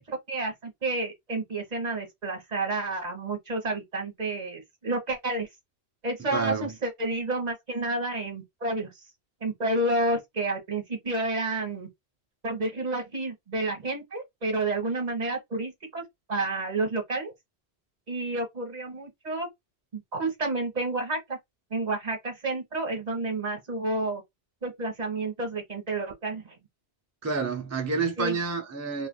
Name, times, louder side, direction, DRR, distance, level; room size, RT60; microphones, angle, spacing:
voice 1, 0.1-5.5 6.0-8.9 9.4-11.9 12.4-16.0 16.3-17.3 18.1-19.5 19.9-21.4 21.7-24.2 24.6-26.5 28.2-28.4, right 2 dB, 40° right, 1.2 m, -30 dB
voice 2, 6.3-6.7 27.2-29.1, right 4 dB, 25° right, 0.4 m, -29 dB
3.3 x 2.5 x 2.2 m
omnidirectional pair, 1.1 m